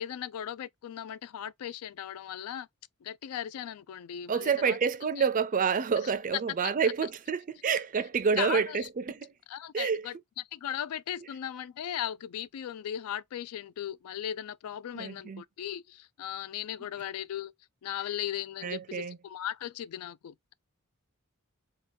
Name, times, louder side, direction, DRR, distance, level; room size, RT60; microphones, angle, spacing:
voice 1, 0.0-2.7 3.0-4.8 5.2-5.3 6.6-6.9 8.4-8.9 9.5-10.2 10.5-17.5 17.8-20.5, left 10 dB, 75° left, 0.3 m, -37 dB
voice 2, 4.3-9.3 9.7-10.1 14.9-15.4 18.6-19.2, right 6 dB, 35° right, 0.4 m, -28 dB
3.6 x 2.3 x 2.6 m
head